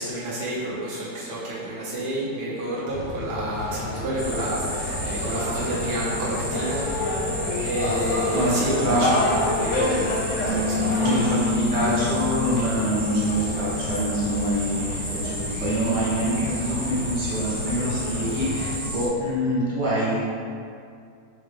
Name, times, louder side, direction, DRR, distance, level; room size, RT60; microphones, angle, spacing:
voice 1, 0.0-6.8 7.6-10.1 10.5-11.2, right 1 dB, 70° right, -7 dB, 0.5 m, -29 dB
sound 1, 2.9-18.8, left 2 dB, 60° left, 0.8 m, -30 dB
sound 2, 4.2-19.1, right 1 dB, ahead, 0.5 m, -33 dB
voice 2, 8.3-9.3 11.0-20.1, equal, 35° right, -8 dB, 0.9 m, -25 dB
Bass guitar, 10.5-16.7, left 4 dB, 85° right, 1.3 m, -31 dB
4.0 x 3.0 x 3.4 m, 2.3 s
omnidirectional pair, 2.0 m